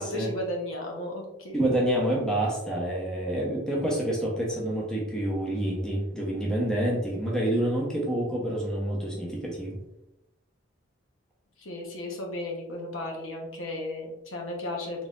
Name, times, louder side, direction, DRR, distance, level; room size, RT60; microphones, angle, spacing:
voice 1, 0.0-1.8 11.6-15.1, left 1 dB, 75° left, 0 dB, 1.0 m, -35 dB
voice 2, 1.5-9.8, right 1 dB, 5° left, -4 dB, 0.8 m, -28 dB
4.0 x 3.7 x 2.4 m, 0.90 s
head